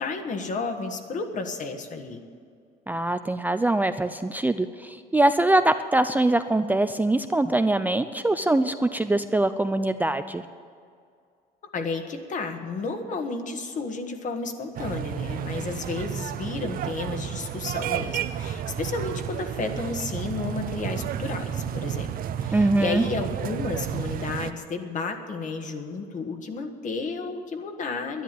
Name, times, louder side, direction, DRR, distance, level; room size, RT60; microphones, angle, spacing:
voice 1, 0.0-2.2 11.7-28.2, left 3 dB, 50° left, 6 dB, 1.6 m, -32 dB
voice 2, 2.9-10.4 22.5-23.0, right 2 dB, 10° right, 9 dB, 0.4 m, -23 dB
sound 1, 14.7-24.5, right 9 dB, 60° right, 0.6 m, -32 dB
11.0 x 11.0 x 9.1 m, 2.3 s
cardioid pair, 110°, 17 cm